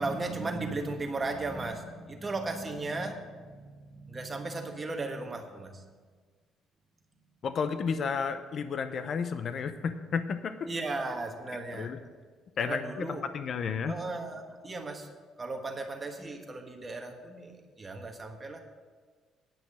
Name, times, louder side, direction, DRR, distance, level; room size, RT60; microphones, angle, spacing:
voice 1, 0.0-5.9 10.6-11.9 12.6-13.2 13.9-15.1 15.4-18.6, right 3 dB, 20° right, 3 dB, 1.4 m, -36 dB
voice 2, 7.4-10.7 11.7-12.0 12.6-13.1 13.3-14.0, left 6 dB, 45° left, 10 dB, 0.6 m, -32 dB
10.5 x 6.0 x 8.6 m, 1.5 s
cardioid pair, 135°, 0 cm